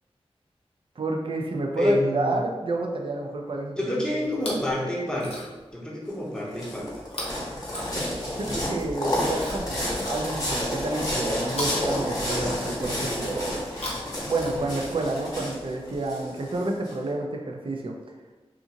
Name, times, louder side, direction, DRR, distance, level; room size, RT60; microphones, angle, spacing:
voice 1, 1.0-4.2 8.4-13.6 14.1-18.0, right 2 dB, 55° right, 1 dB, 0.4 m, -30 dB
voice 2, 1.8-2.5 3.8-5.5 5.7-6.9, left 1 dB, 5° left, -5 dB, 0.7 m, -28 dB
Chewing mastication, 4.2-4.7 5.1-5.7 7.1-8.4 9.3-10.6 11.5-12.7 13.6-15.0 15.9-16.0, left 1 dB, 65° left, 0.7 m, -39 dB
sound 1, 6.1-16.9, left 1 dB, 35° left, 0.9 m, -30 dB
2.5 x 2.5 x 2.8 m, 1.2 s
wide cardioid pair, 80°, 11 cm